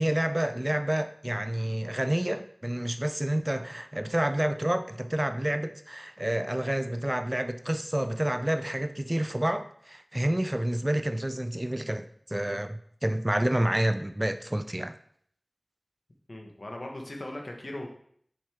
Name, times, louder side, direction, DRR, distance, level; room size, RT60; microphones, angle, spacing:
voice 1, 0.0-14.9, right 1 dB, 25° right, 0.4 m, -29 dB
voice 2, 16.3-17.9, left 1 dB, 70° left, 1.3 m, -38 dB
7.5 x 5.6 x 3.5 m
wide cardioid pair, 40°, 0 cm